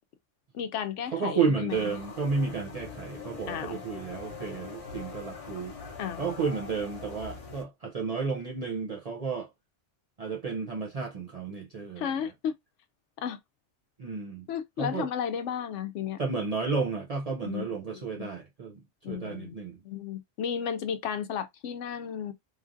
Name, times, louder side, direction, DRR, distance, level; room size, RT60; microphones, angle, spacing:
voice 1, 0.5-1.9 3.5-3.8 6.0-6.2 12.0-12.5 13.2-13.4 14.5-16.2 17.4-18.3 19.0-22.3, left 8 dB, 80° left, 0.9 m, -34 dB
voice 2, 1.1-5.7 6.2-9.5 10.2-12.1 14.0-14.5 14.8-15.1 16.2-18.8 19.1-19.8, right 5 dB, 55° right, 0.4 m, -32 dB
sound 1, 1.7-7.6, left 5 dB, 35° left, 0.7 m, -43 dB
3.1 x 2.4 x 2.5 m
omnidirectional pair, 1.2 m